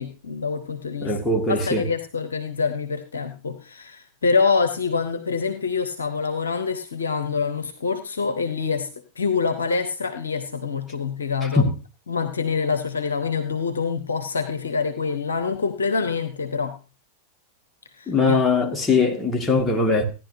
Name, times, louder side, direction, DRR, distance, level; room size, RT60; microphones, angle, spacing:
voice 1, 0.0-1.1 1.5-8.9 9.2-11.7 12.1-16.8 18.0-18.4, left 5 dB, 70° left, 0.8 m, -25 dB
voice 2, 1.0-1.9 11.4-11.7 18.1-20.0, left 3 dB, 10° left, 1.9 m, -21 dB
16.5 x 10.5 x 2.7 m
figure-of-eight pair, 90°, 0 cm